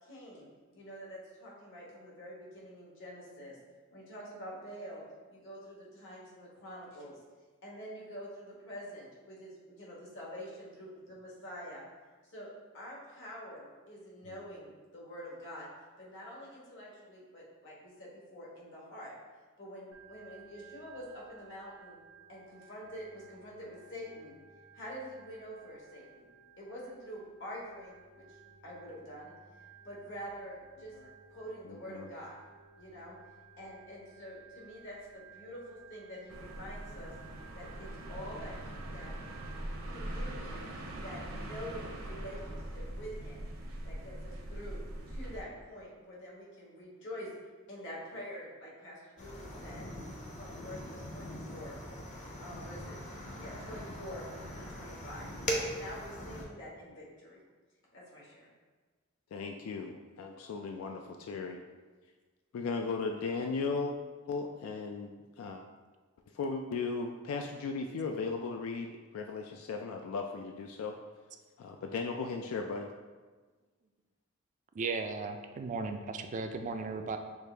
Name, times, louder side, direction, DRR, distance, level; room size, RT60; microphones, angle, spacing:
voice 1, 0.0-3.6 3.9-5.0 5.3-7.2 7.6-11.8 12.2-12.5 12.7-15.7 16.0-19.1 19.6-22.0 22.3-24.3 24.7-26.3 26.6-28.4 28.6-29.3 29.8-30.9 31.3-32.4 32.8-33.2 33.6-37.1 37.5-39.1 39.9-40.7 40.9-43.5 43.8-44.8 45.1-47.3 47.7-49.9 50.3-51.8 52.2-53.0 53.4-54.2 54.5-57.4 57.9-58.5, equal, 65° left, -4 dB, 1.3 m, -46 dB
Organ, 19.9-39.6, right 6 dB, 90° right, 1.0 m, -57 dB
voice 2, 31.7-32.1 59.3-61.0 61.3-61.6 62.5-63.9 64.3-65.6 66.3-71.0 71.6-72.9, left 4 dB, 85° left, 4 dB, 0.3 m, -36 dB
sound 1, 36.3-45.4, right 1 dB, 75° right, 0.7 m, -42 dB
sound 2, 49.2-56.4, equal, 35° left, 0.7 m, -41 dB
voice 3, 74.7-77.2, right 4 dB, 35° right, 6 dB, 0.3 m, -36 dB
6.3 x 2.5 x 3.3 m, 1.3 s
head